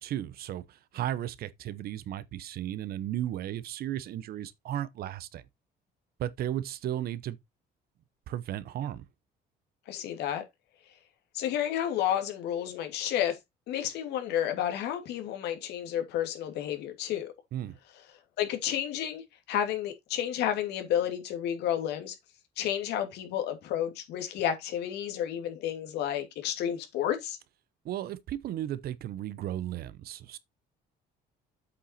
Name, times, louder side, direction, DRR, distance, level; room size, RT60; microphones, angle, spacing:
voice 1, 0.0-5.4 6.2-7.4 8.3-9.1 17.5-17.8 27.8-30.4, right 12 dB, 65° right, 0.9 m, -35 dB
voice 2, 9.9-10.4 11.3-13.4 13.7-17.3 18.4-22.1 22.6-27.4, left 10 dB, 80° left, 2.7 m, -31 dB
8.2 x 5.6 x 4.2 m
cardioid pair, 110°, 17 cm